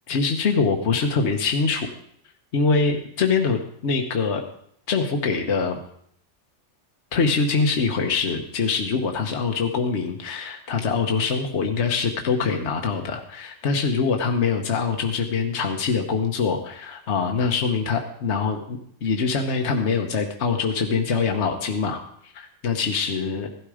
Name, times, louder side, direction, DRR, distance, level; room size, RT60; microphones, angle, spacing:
voice 1, 0.1-1.9 2.5-4.4 4.9-5.8 7.1-23.5, left 5 dB, 65° left, 3 dB, 1.4 m, -24 dB
16.5 x 12.5 x 5.0 m, 0.69 s
omnidirectional pair, 1.3 m